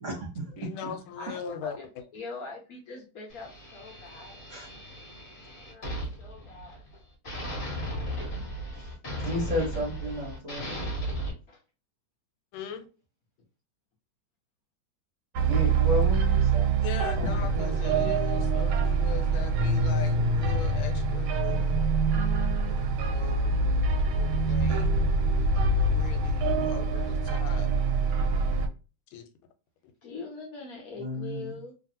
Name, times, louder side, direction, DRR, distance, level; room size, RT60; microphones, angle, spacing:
voice 1, 0.0-0.7 4.5-4.7 8.8-8.9 9.2-10.8 15.5-18.1 31.0-31.5, equal, 55° right, 0.9 m, -33 dB
voice 2, 0.6-1.8 12.5-12.9 16.8-21.8 23.0-23.6 24.1-24.9 25.9-27.7 29.1-29.3, left 7 dB, 90° left, 1.4 m, -39 dB
voice 3, 1.2-4.4 5.5-7.0 11.5-11.6 23.6-24.3 30.0-31.7, left 4 dB, 60° left, 1.0 m, -43 dB
sound 1, 3.3-6.9 7.2-11.3, equal, 30° left, 1.1 m, -36 dB
sound 2, 15.4-28.7, right 3 dB, 90° right, 1.4 m, -25 dB
3.2 x 2.5 x 2.7 m
omnidirectional pair, 2.2 m